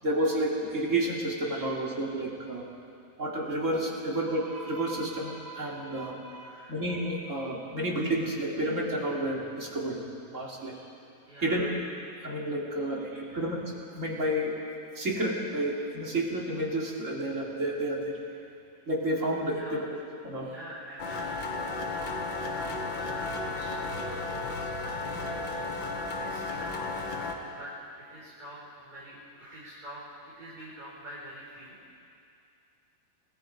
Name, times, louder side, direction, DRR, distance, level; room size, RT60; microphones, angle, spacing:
voice 1, 0.0-2.7 3.2-10.1 10.3-10.8 11.4-11.7 12.2-13.6 13.9-14.5 15.0-18.2 18.9-19.8 20.2-20.5, right 1 dB, 40° right, -4 dB, 3.8 m, -30 dB
voice 2, 6.4-6.8 11.3-11.7 13.3-13.6 19.5-19.8 20.4-25.3 26.0-27.7 28.1-30.1 30.4-32.0, right 1 dB, 20° right, -9 dB, 5.1 m, -47 dB
sound 1, 21.0-27.3, left 3 dB, 70° left, 2.4 m, -34 dB
30.0 x 19.5 x 5.2 m, 2.4 s
omnidirectional pair, 2.1 m